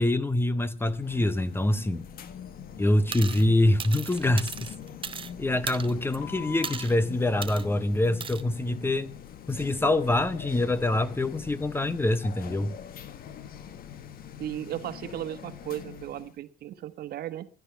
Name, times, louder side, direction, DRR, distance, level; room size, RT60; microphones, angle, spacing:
voice 1, 0.0-2.0 2.8-4.7 5.4-9.1 9.5-12.8, left 1 dB, 15° left, 0.9 m, -25 dB
sound 1, 0.8-16.4, left 8 dB, 60° left, 1.4 m, -43 dB
sound 2, 3.1-3.5 3.8-5.3 5.7-6.2 6.6-7.0 7.4-7.7 8.2-8.4, right 6 dB, 30° right, 0.9 m, -36 dB
voice 2, 14.4-17.5, right 12 dB, 65° right, 1.3 m, -36 dB
16.5 x 11.5 x 5.7 m
cardioid pair, 110°, 17 cm